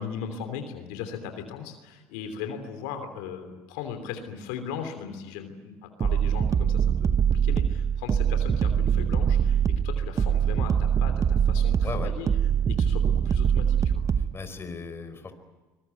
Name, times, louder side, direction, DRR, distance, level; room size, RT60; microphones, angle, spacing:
voice 1, 0.0-12.3 12.6-14.0, left 7 dB, 80° left, 7 dB, 3.2 m, -38 dB
sound 1, 6.0-14.3, right 8 dB, 35° right, 1.2 m, -23 dB
voice 2, 14.1-15.3, left 4 dB, 30° left, 9 dB, 4.7 m, -36 dB
25.0 x 21.5 x 9.5 m, 1.2 s
supercardioid pair, 75°, 9 cm